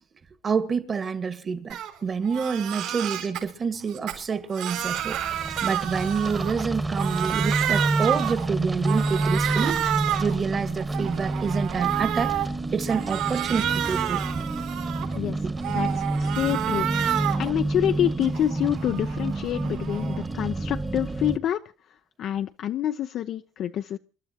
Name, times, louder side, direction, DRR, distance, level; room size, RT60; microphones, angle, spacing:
voice 1, 0.4-5.2 5.6-9.8 10.2-12.3 12.7-14.4 15.4-15.5, right 5 dB, 35° right, 1.6 m, -28 dB
Crying sobbing, 1.7-1.9 2.2-3.4 3.9-6.7 6.9-8.5 8.8-10.4 10.8-12.5 12.9-15.2 15.6-17.5 17.9-20.3, right 11 dB, 80° right, 5.4 m, -30 dB
sound 1, 4.8-21.4, right 2 dB, 15° right, 1.3 m, -29 dB
voice 2, 15.7-16.9 17.4-21.6 22.2-24.0, left 11 dB, 60° left, 0.6 m, -27 dB
28.5 x 12.0 x 2.9 m
supercardioid pair, 85°, 0 cm